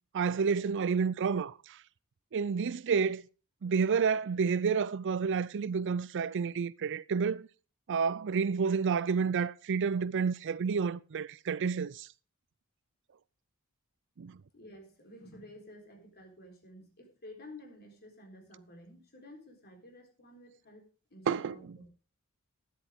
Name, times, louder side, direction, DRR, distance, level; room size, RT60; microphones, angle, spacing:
voice 1, 0.1-1.8 2.3-3.2 3.6-7.5 7.9-12.1 14.2-14.4 21.3-21.8, right 6 dB, 55° right, 0.4 m, -30 dB
voice 2, 14.5-21.9, left 1 dB, 45° left, 3.9 m, -52 dB
13.0 x 10.0 x 3.6 m
head